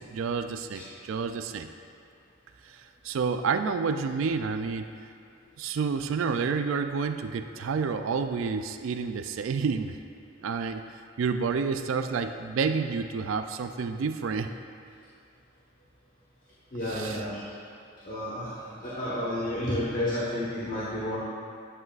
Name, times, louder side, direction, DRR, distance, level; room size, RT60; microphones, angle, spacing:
voice 1, 0.0-1.7 2.6-4.9 5.6-10.0 10.4-10.8 11.2-14.5 16.9-17.2, right 5 dB, 75° right, 8 dB, 0.4 m, -29 dB
voice 2, 16.7-17.4 18.0-21.2, left 1 dB, 40° left, -8 dB, 1.2 m, -31 dB
11.0 x 7.6 x 2.4 m, 2.4 s
head